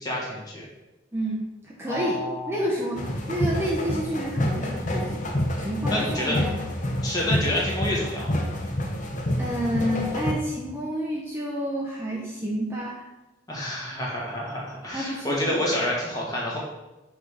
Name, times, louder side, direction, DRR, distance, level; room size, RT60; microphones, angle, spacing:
voice 1, 0.0-0.6 1.8-2.6 5.9-6.4 7.0-8.3 13.5-16.6, left 1 dB, 20° left, -4 dB, 1.5 m, -28 dB
voice 2, 1.1-2.2 2.5-6.7 9.4-13.0 14.9-15.4, equal, 15° right, -4 dB, 0.7 m, -29 dB
sound 1, 3.0-10.3, left 1 dB, 40° left, 0.8 m, -28 dB
6.1 x 3.6 x 4.9 m, 1.1 s
head